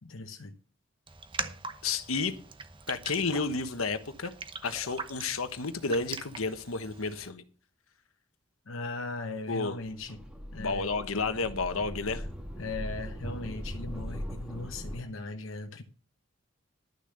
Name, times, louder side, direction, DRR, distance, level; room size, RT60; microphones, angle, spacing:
voice 1, 0.0-0.5 8.7-10.2 10.5-10.9 12.6-15.8, left 2 dB, 70° left, 0.9 m, -38 dB
Raindrop, 1.1-7.3, right 4 dB, 25° right, 0.9 m, -42 dB
voice 2, 1.8-2.4 2.9-4.3 4.6-7.4 9.5-9.8 10.6-12.2, left 4 dB, 90° left, 1.2 m, -31 dB
sound 1, 9.7-15.0, equal, 5° right, 1.8 m, -40 dB
12.0 x 6.9 x 6.6 m
head